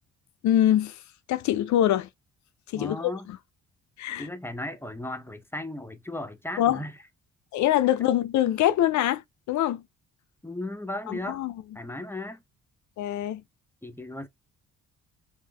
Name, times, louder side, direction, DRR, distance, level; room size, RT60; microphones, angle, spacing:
voice 1, 0.4-0.9 1.3-2.1 2.7-3.0 4.0-4.3 6.6-6.8 7.5-9.2 9.5-9.8 11.1-11.5 13.0-13.4, left 12 dB, 70° left, 0.5 m, -23 dB
voice 2, 2.7-3.3 4.2-7.0 10.4-11.4 11.7-12.4 13.8-14.3, left 1 dB, 10° left, 0.5 m, -36 dB
3.6 x 2.7 x 3.3 m
cardioid pair, 90°, 30 cm